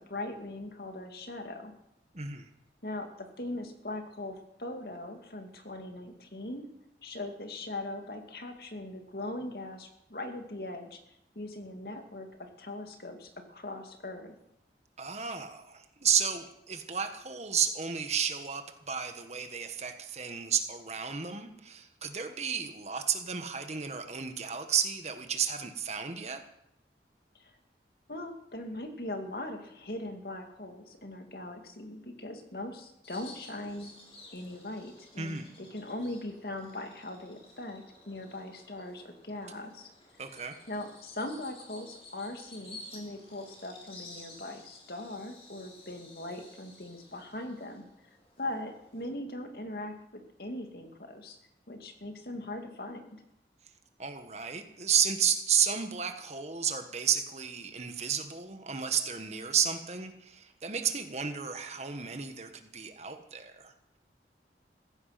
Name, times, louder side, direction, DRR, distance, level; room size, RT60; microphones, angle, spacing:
voice 1, 0.0-1.7 2.8-6.7 7.0-11.0 11.4-14.3 27.3-27.5 28.1-33.9 34.3-39.9 40.7-47.9 48.4-51.4 51.7-53.2, left 1 dB, 55° left, 5 dB, 2.3 m, -40 dB
voice 2, 2.1-2.4 15.0-26.4 35.2-35.5 40.2-40.5 54.0-63.7, right 7 dB, 40° right, 7 dB, 1.5 m, -32 dB
Bird vocalization bird call bird song, 33.0-49.1, left 2 dB, 35° left, 4.0 m, -53 dB
15.5 x 15.5 x 5.9 m, 0.78 s
head